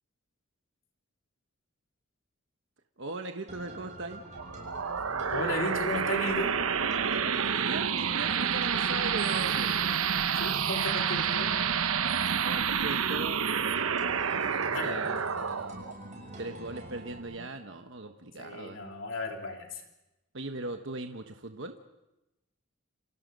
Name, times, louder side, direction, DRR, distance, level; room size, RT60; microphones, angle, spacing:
voice 1, 3.0-4.2 7.5-9.8 12.4-15.2 16.4-18.8 20.3-21.8, right 2 dB, 60° right, 5 dB, 1.2 m, -39 dB
sound 1, 3.5-17.2, right 1 dB, 35° right, 7.0 m, -46 dB
sound 2, 4.3-17.5, right 7 dB, 90° right, 1.0 m, -29 dB
voice 2, 5.3-6.5 10.3-11.5 14.6-15.1 18.4-19.8, left 1 dB, 65° left, 2 dB, 3.2 m, -34 dB
28.5 x 27.5 x 5.4 m, 0.95 s
head